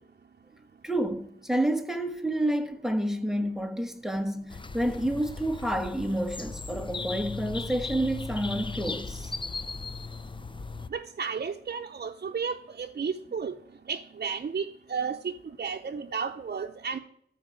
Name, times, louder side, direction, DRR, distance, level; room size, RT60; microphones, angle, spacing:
voice 1, 0.8-9.3, right 1 dB, 5° right, 1.2 m, -29 dB
sound 1, 4.5-10.9, left 3 dB, 30° left, 0.6 m, -37 dB
voice 2, 10.9-13.5 13.9-17.0, right 6 dB, 65° right, 0.6 m, -33 dB
14.0 x 4.7 x 8.7 m
wide cardioid pair, 90°, 17 cm